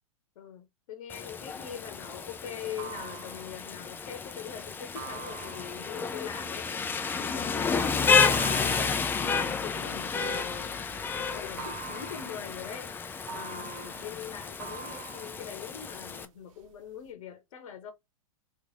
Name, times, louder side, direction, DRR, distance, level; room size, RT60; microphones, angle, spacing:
voice 1, 0.4-6.7 7.1-9.1 9.4-10.7 11.2-13.0 13.3-17.9, left 9 dB, 65° left, 0.8 m, -42 dB
Rain, 1.1-16.2, left 5 dB, 10° left, 0.3 m, -31 dB
sound 1, 1.3-11.1 11.4-16.1 16.5-17.1, right 7 dB, 60° right, 0.9 m, -44 dB
3.0 x 2.4 x 3.8 m
hypercardioid pair, 105°, 18 cm